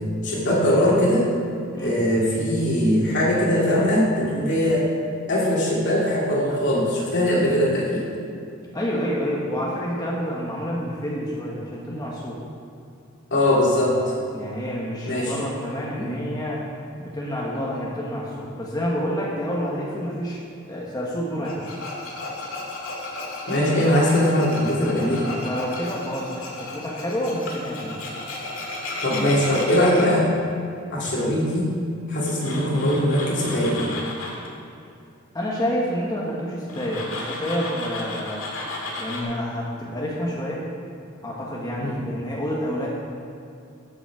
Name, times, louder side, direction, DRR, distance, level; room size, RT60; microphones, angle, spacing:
voice 1, 0.2-1.3 1.8-4.9 5.3-8.0 13.3-14.1 15.1-15.3 15.9-16.1 23.5-25.2 29.0-30.3 30.9-31.7 32.1-33.9 41.8-42.0, left 1 dB, 60° left, -5 dB, 2.7 m, -21 dB
voice 2, 8.7-12.4 14.3-16.6 17.0-20.4 20.7-21.8 24.9-28.0 35.3-38.4 39.0-40.7 41.2-42.9, equal, 20° left, -5 dB, 1.3 m, -28 dB
Tools, 21.4-30.1 32.2-34.5 36.7-39.2, left 2 dB, 80° left, 2.0 m, -34 dB
13.0 x 7.1 x 4.8 m, 2.6 s
head